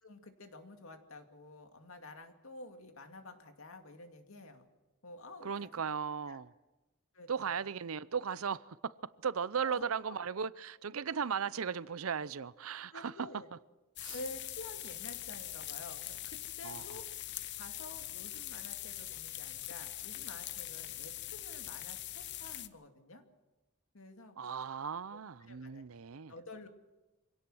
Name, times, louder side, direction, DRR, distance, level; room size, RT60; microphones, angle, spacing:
voice 1, 0.0-4.7 5.0-6.0 6.3-6.4 7.1-7.6 9.6-10.2 12.4-12.5 12.9-13.5 14.1-17.0 17.6-23.2 23.9-24.4 25.1-25.2 25.5-25.8 26.3-26.7, left 2 dB, 75° left, 2.3 m, -50 dB
voice 2, 5.4-6.5 7.3-8.9 9.2-13.3 14.0-14.2 16.6-16.8 24.4-26.3, right 6 dB, 80° right, 0.6 m, -37 dB
sound 1, 14.0-22.7, left 13 dB, 55° left, 0.8 m, -43 dB
25.0 x 17.5 x 6.2 m
head